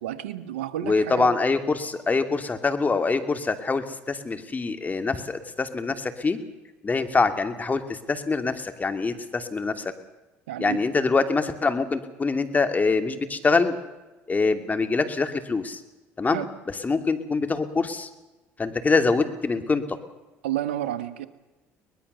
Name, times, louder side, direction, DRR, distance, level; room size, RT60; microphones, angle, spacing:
voice 1, 0.0-1.3 10.5-10.8 16.2-16.4 20.4-21.3, right 12 dB, 90° right, 10 dB, 1.2 m, -31 dB
voice 2, 0.8-6.4 6.8-9.8 10.6-13.8 14.3-15.8 16.2-16.4 16.8-18.1 18.6-19.8, left 4 dB, 25° left, 8 dB, 2.7 m, -24 dB
23.5 x 20.0 x 6.9 m, 1.1 s
hypercardioid pair, 75°, 6 cm